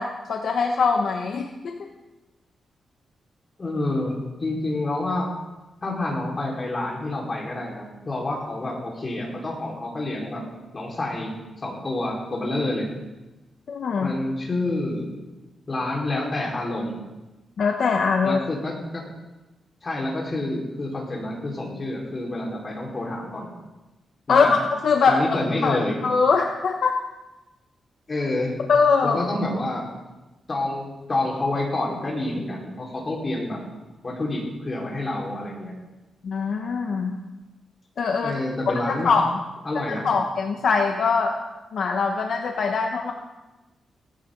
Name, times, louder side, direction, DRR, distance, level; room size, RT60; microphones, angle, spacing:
voice 1, 0.0-1.9 13.7-14.1 17.6-18.4 24.3-24.5 24.8-25.2 25.6-27.0 28.7-29.2 36.2-37.2 38.0-38.4 38.9-39.3 39.9-41.4 41.7-43.1, left 5 dB, 60° left, 2 dB, 1.2 m, -22 dB
voice 2, 3.6-5.3 5.8-10.4 10.7-12.9 14.0-15.1 15.7-17.0 18.2-19.1 19.8-23.5 24.3-24.5 25.1-26.0 28.1-28.5 29.0-29.8 30.5-33.6 34.0-35.7 38.2-39.1 39.6-40.1, left 2 dB, 30° left, -3 dB, 4.6 m, -28 dB
18.0 x 16.0 x 3.9 m, 1.1 s
wide cardioid pair, 145°, 0 cm